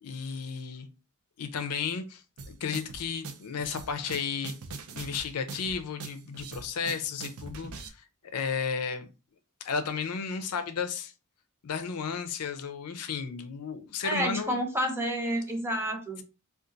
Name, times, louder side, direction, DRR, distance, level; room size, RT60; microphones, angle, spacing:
voice 1, 0.0-0.9 1.4-4.5 4.9-8.0 8.3-9.1 9.6-11.1 11.6-14.6, left 6 dB, 85° left, 0.5 m, -33 dB
sound 1, 2.4-7.9, right 4 dB, 75° right, 0.5 m, -42 dB
voice 2, 14.0-16.2, equal, 10° right, 0.6 m, -29 dB
2.5 x 2.4 x 3.8 m
head